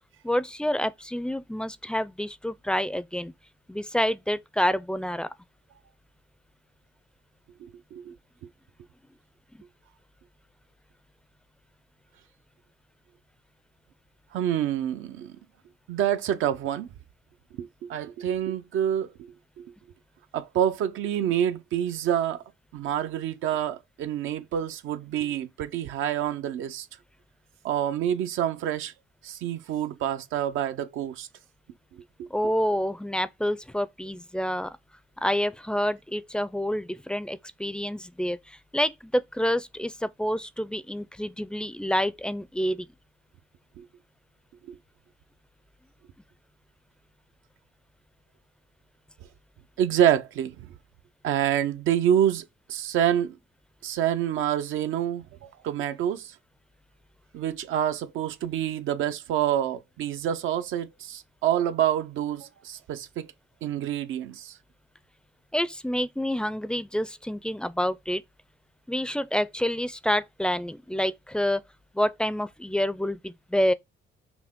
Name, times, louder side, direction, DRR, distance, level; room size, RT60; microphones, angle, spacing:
voice 1, 0.2-3.3 3.7-5.3 32.3-34.8 35.2-42.9 65.5-68.2 68.9-71.6 71.9-73.7, equal, 5° left, 0.4 m, -28 dB
voice 2, 7.6-8.1 14.3-15.4 15.9-16.9 17.6-19.1 19.6-19.7 20.3-22.4 22.7-26.9 27.6-28.9 29.2-31.3 32.2-32.3 49.8-50.7 51.2-53.4 53.8-56.3 57.3-63.3 63.6-64.5, right 10 dB, 80° right, 0.5 m, -27 dB
5.9 x 2.1 x 3.5 m
cardioid pair, 90°, 20 cm